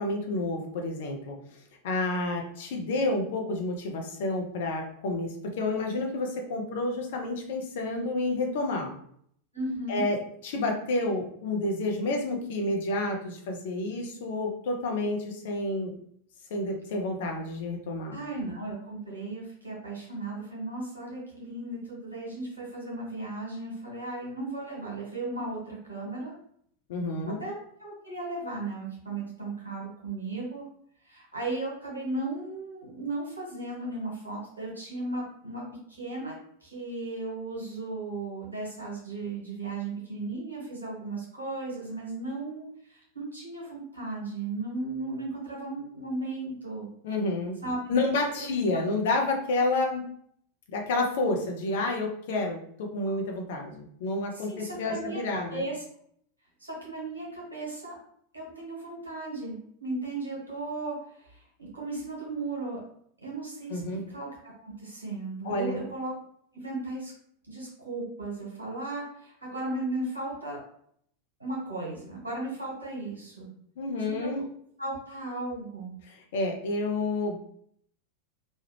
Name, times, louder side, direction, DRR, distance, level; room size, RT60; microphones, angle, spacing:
voice 1, 0.0-1.4 1.8-8.9 9.9-10.2 10.4-15.9 16.5-18.2 26.9-27.4 47.0-47.6 47.9-50.0 50.7-55.6 63.7-64.0 65.4-65.9 73.8-74.4 76.3-77.4, left 2 dB, 55° left, 2 dB, 0.7 m, -29 dB
voice 2, 9.5-10.1 18.1-26.3 27.3-30.6 31.0-46.9 47.6-48.4 54.3-55.8 56.6-57.9 58.3-62.8 63.2-64.3 64.6-66.1 66.5-67.1 67.5-70.6 71.4-73.5 74.1-74.3 74.8-75.9, right 2 dB, 80° right, -4 dB, 1.4 m, -36 dB
3.1 x 2.4 x 3.2 m, 0.66 s
figure-of-eight pair, 90°, 0 cm